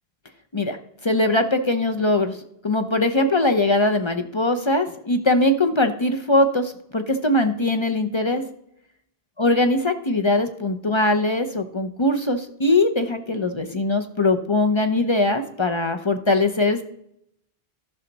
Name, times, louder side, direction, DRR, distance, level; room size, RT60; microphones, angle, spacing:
voice 1, 1.0-2.4 2.6-8.4 9.4-16.8, left 2 dB, 35° left, 6 dB, 0.6 m, -21 dB
14.0 x 5.7 x 4.0 m, 0.74 s
omnidirectional pair, 1.1 m